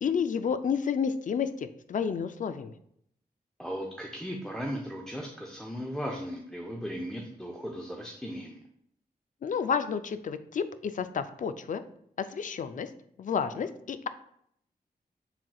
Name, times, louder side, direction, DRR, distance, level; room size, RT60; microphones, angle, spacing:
voice 1, 0.0-2.7 9.4-11.8 12.2-12.9 13.2-14.1, left 6 dB, 55° left, 12 dB, 0.4 m, -30 dB
voice 2, 3.6-8.6, equal, 5° left, -1 dB, 0.6 m, -37 dB
5.8 x 3.7 x 2.3 m, 0.70 s
cardioid pair, 65°, 16 cm